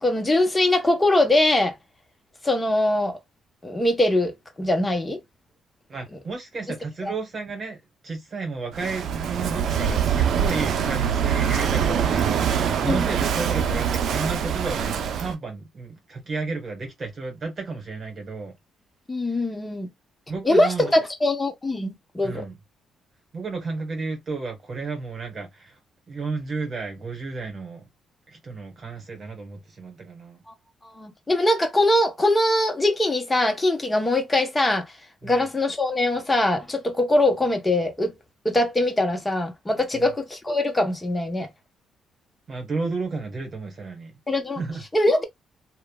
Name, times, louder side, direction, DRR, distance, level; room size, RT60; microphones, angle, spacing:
voice 1, 0.0-1.7 2.4-3.2 3.6-5.2 7.0-7.1 12.9-13.0 19.1-19.9 20.4-22.5 31.0-34.8 35.2-38.1 38.4-41.5 44.3-44.6 44.9-45.2, left 1 dB, 15° left, 0.9 m, -22 dB
voice 2, 5.9-7.8 8.0-18.5 20.3-20.9 22.2-22.6 23.3-25.8 26.1-27.8 28.3-30.4 35.2-35.4 39.9-40.1 42.5-44.1 44.5-44.8, right 4 dB, 45° right, 1.3 m, -32 dB
Walk footsteps / Wind / Waves surf, 8.7-15.3, right 8 dB, 70° right, 0.5 m, -24 dB
3.0 x 2.2 x 2.3 m
cardioid pair, 90°, 0 cm